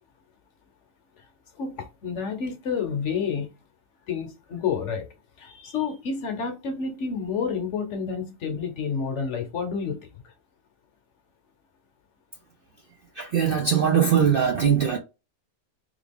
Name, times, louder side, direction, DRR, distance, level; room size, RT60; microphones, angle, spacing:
voice 1, 1.6-3.5 4.1-5.0 5.4-10.0, left 6 dB, 60° left, 1.0 m, -29 dB
voice 2, 13.2-15.0, right 7 dB, 60° right, 0.6 m, -21 dB
3.5 x 2.3 x 3.4 m
omnidirectional pair, 1.5 m